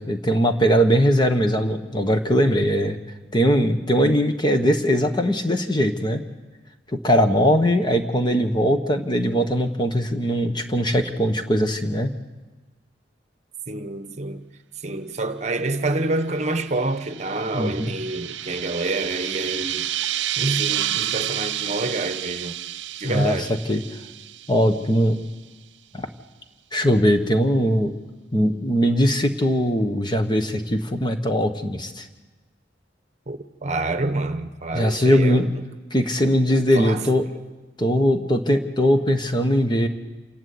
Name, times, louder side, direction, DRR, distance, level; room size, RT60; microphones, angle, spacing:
voice 1, 0.0-3.0 3.3-6.2 6.9-12.1 17.5-17.9 23.0-23.4 23.7-23.8 24.5-25.2 25.9-26.1 26.7-28.0 28.3-32.1 34.7-35.5 35.9-37.2 37.8-39.9, equal, 25° left, 1.3 m, -20 dB
voice 2, 13.7-14.4 14.8-19.9 20.4-22.6 23.0-23.5 33.3-35.6 36.5-37.0, right 2 dB, 40° right, 1.0 m, -27 dB
sound 1, 16.6-25.0, right 12 dB, 80° right, 0.6 m, -30 dB
27.5 x 12.0 x 8.6 m
head